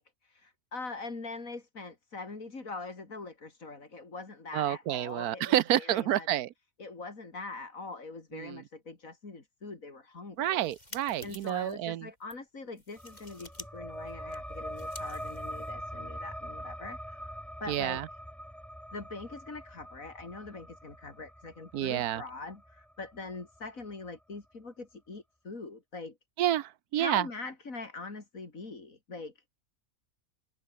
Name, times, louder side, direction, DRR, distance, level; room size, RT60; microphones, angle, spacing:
voice 1, 0.0-6.3 6.8-10.7 11.2-17.3 17.6-18.0 18.9-26.2 27.0-29.4, left 3 dB, 65° left, 3.9 m, -43 dB
voice 2, 4.5-6.5 8.3-8.6 10.4-12.1 17.7-18.1 21.7-22.2 26.4-27.3, right 12 dB, 90° right, 1.3 m, -29 dB
sound 1, 10.4-11.7 12.2-12.4 12.8-13.7 13.9-15.9, left 1 dB, 25° left, 6.4 m, -50 dB
sound 2, 13.0-24.1, equal, ahead, 3.3 m, -43 dB
open air
omnidirectional pair, 1.5 m